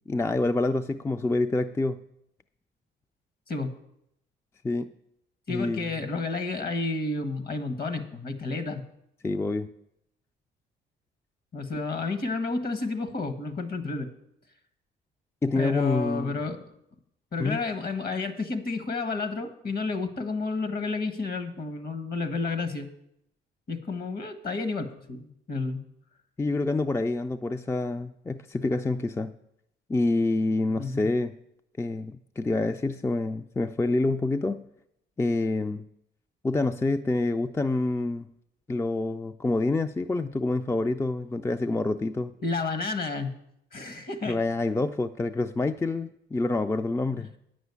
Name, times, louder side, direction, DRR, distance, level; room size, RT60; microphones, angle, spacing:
voice 1, 0.1-2.0 4.6-4.9 5.5-5.9 9.2-9.7 15.4-16.3 17.4-17.6 26.4-29.3 29.9-31.3 31.8-34.6 35.2-35.8 36.4-38.3 38.7-42.3 44.3-47.3, left 2 dB, 15° left, 9 dB, 0.4 m, -27 dB
voice 2, 5.5-8.8 11.5-14.1 15.5-16.6 17.3-22.9 23.7-25.8 30.8-31.1 42.4-43.3 43.7-44.4, left 3 dB, 50° left, 10 dB, 1.4 m, -31 dB
9.3 x 6.2 x 8.2 m, 0.78 s
cardioid pair, 90°, 20 cm